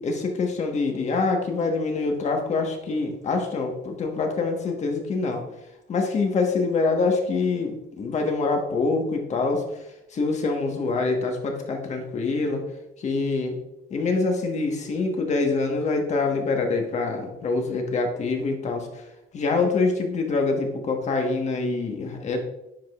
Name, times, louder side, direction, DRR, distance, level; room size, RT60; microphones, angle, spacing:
voice 1, 0.0-5.4 5.9-9.6 10.1-12.6 13.0-13.6 13.9-19.0 19.3-22.4, left 3 dB, 45° left, 3 dB, 1.4 m, -25 dB
10.0 x 5.0 x 2.4 m, 0.88 s
cardioid pair, 110°, 17 cm